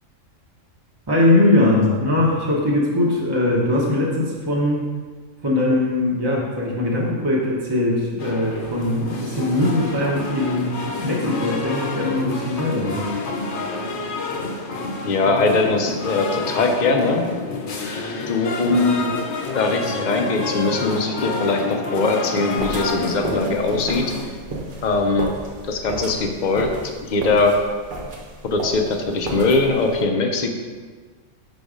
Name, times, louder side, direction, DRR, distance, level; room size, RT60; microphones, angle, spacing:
voice 1, 1.1-4.8 5.4-10.7 11.0-13.1, left 1 dB, 20° right, -4 dB, 0.9 m, -20 dB
sound 1, 8.2-24.3, left 3 dB, 65° left, 1.1 m, -29 dB
voice 2, 15.0-17.3 18.3-19.0 19.5-24.0 24.8-25.3 25.7-26.7 27.0-27.6 28.4-30.5, left 3 dB, 45° left, 4 dB, 0.6 m, -21 dB
sound 2, 22.6-30.0, right 2 dB, 50° right, 1.1 m, -33 dB
5.8 x 4.1 x 5.0 m, 1.5 s
omnidirectional pair, 1.4 m